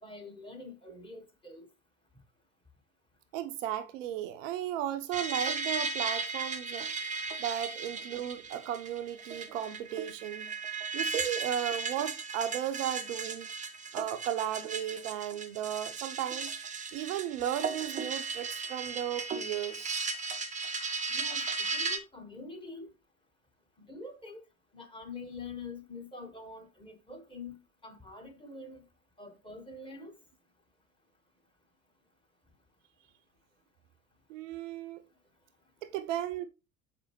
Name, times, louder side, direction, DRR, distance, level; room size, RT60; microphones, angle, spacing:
voice 1, 0.0-1.7 21.1-22.9 23.8-24.4 24.7-27.5 27.8-28.8 29.2-30.2, left 3 dB, 10° left, 1.4 m, -45 dB
voice 2, 3.3-6.9 7.4-10.6 10.9-13.5 13.9-16.5 16.9-20.0 34.3-35.0 35.8-36.5, right 11 dB, 60° right, 0.6 m, -35 dB
sound 1, 5.1-22.0, right 4 dB, 15° right, 0.6 m, -36 dB
6.6 x 4.9 x 3.0 m
figure-of-eight pair, 65°, 44 cm